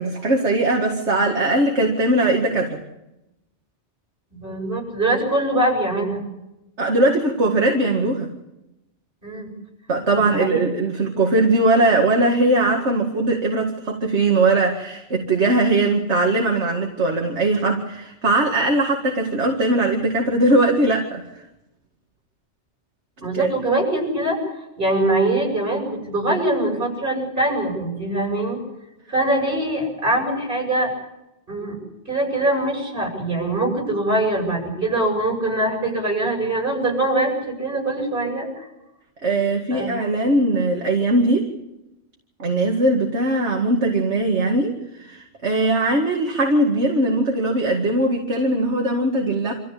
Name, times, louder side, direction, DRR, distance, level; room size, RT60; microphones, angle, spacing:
voice 1, 0.0-2.8 6.8-8.3 9.9-21.3 23.3-23.5 39.2-41.5 42.4-44.7 45.0-49.5, right 2 dB, 70° right, 1 dB, 2.5 m, -20 dB
voice 2, 4.3-6.2 9.2-9.5 10.2-10.6 23.2-28.6 29.1-30.9 31.5-31.8 32.0-38.7 39.7-39.9, right 1 dB, 50° right, 1 dB, 8.3 m, -23 dB
26.5 x 15.0 x 8.5 m, 0.91 s
omnidirectional pair, 1.2 m